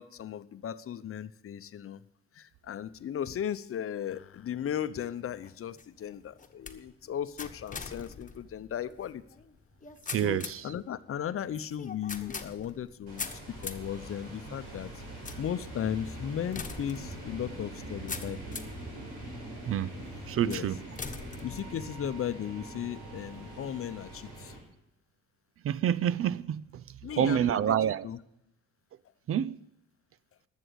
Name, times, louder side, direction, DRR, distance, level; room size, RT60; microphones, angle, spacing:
voice 1, 0.0-2.0 2.3-9.2 10.2-14.9 15.4-18.6 20.4-20.7 21.4-24.6 27.0-28.2, left 9 dB, 50° left, 0.8 m, -36 dB
sound 1, 5.2-18.9 19.4-19.9 20.5-22.3, left 5 dB, 25° left, 1.4 m, -44 dB
voice 2, 10.1-10.6 19.7-20.0 20.3-20.8 25.6-26.6 27.2-28.1 29.3-29.6, right 9 dB, 50° right, 0.5 m, -27 dB
sound 2, 13.1-24.6, right 1 dB, 90° right, 4.9 m, -43 dB
12.5 x 7.5 x 8.1 m
supercardioid pair, 65°, 30 cm